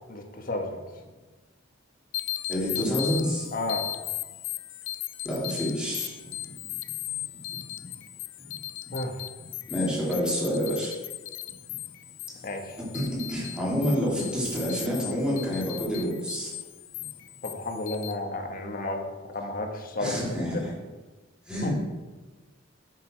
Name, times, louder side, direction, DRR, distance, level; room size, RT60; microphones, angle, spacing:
voice 1, 0.1-0.8 3.5-3.8 8.9-9.1 12.4-12.8 17.4-19.0 19.3-20.1 20.5-20.6 21.6-21.7, left 2 dB, 45° left, 3 dB, 1.4 m, -32 dB
sound 1, 2.1-18.1, left 14 dB, 70° left, 0.6 m, -37 dB
voice 2, 2.5-3.5 5.2-6.1 6.6-6.7 9.7-10.9 12.9-16.5 20.0-20.7 21.5-21.7, equal, 5° right, -6 dB, 3.1 m, -28 dB
10.5 x 6.8 x 4.6 m, 1.3 s
head